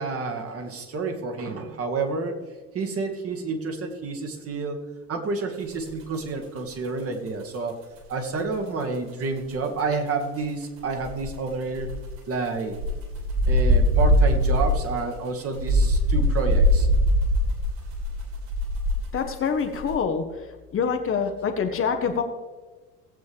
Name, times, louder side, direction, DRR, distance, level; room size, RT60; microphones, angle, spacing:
voice 1, 0.0-2.4 2.7-4.8 5.1-7.8 8.1-11.9 12.3-12.8 13.5-16.9, right 3 dB, 30° right, 5 dB, 1.6 m, -29 dB
sound 1, 5.9-8.3 8.5-9.0 9.2-9.3 9.5-9.7 10.1-10.2 10.4-10.5 10.8-19.3 19.6-20.0, equal, 50° right, 3.8 m, -22 dB
voice 2, 19.1-20.2 20.7-22.2, left 6 dB, 30° left, 5 dB, 1.1 m, -25 dB
17.5 x 8.1 x 3.3 m, 1.3 s
figure-of-eight pair, 70°, 46 cm